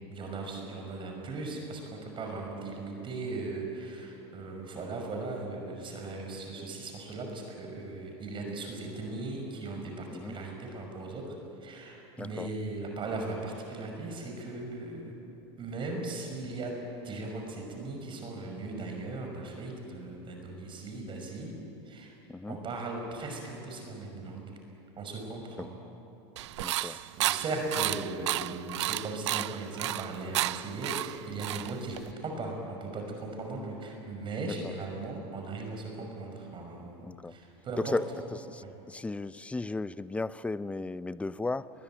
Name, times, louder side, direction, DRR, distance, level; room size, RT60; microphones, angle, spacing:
voice 1, 0.1-11.3 11.6-15.1 15.6-16.7 17.0-21.5 21.8-22.2 22.5-24.4 25.0-25.7 26.5-38.0 38.6-38.7, right 2 dB, 35° right, 2 dB, 5.8 m, -38 dB
voice 2, 12.2-12.5 22.3-22.6 25.6-25.7 26.6-27.0 34.4-34.7 37.0-37.4 37.8-38.0 38.4-41.7, left 3 dB, 10° left, 16 dB, 0.6 m, -35 dB
sound 1, 26.4-32.1, right 15 dB, 85° right, 0.5 m, -32 dB
21.5 x 20.5 x 9.2 m, 3.0 s
hypercardioid pair, 100°, 14 cm